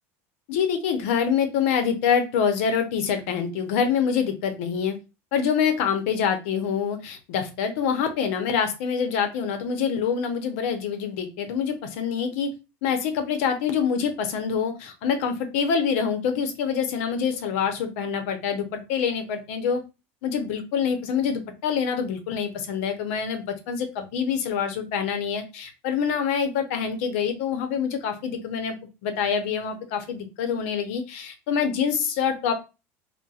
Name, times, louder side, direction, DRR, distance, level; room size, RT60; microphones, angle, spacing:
voice 1, 0.5-5.0 5.3-12.5 12.8-19.8 20.2-28.7 29.0-32.5, left 7 dB, 80° left, 7 dB, 0.7 m, -26 dB
4.0 x 2.1 x 2.4 m, 0.28 s
supercardioid pair, 125°, 7 cm